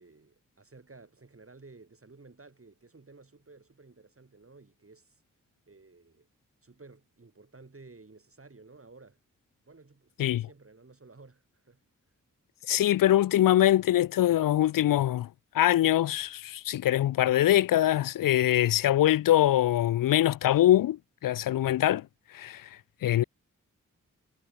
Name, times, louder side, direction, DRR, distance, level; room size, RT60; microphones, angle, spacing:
voice 1, 0.0-5.2 5.7-6.3 6.6-9.2 9.6-11.8, right 3 dB, 45° right, 6.3 m, -54 dB
voice 2, 12.7-15.3 15.5-23.2, left 13 dB, 80° left, 0.5 m, -23 dB
cardioid pair, 40°, 32 cm